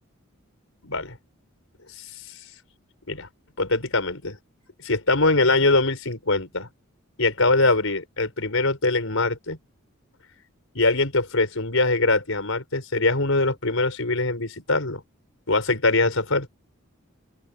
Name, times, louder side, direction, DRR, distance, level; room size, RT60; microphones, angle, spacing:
voice 1, 0.8-1.2 2.0-2.1 3.1-3.3 3.6-4.4 4.8-6.7 7.2-9.6 10.7-15.0 15.5-16.5, left 2 dB, 70° left, 5.1 m, -22 dB
open air
head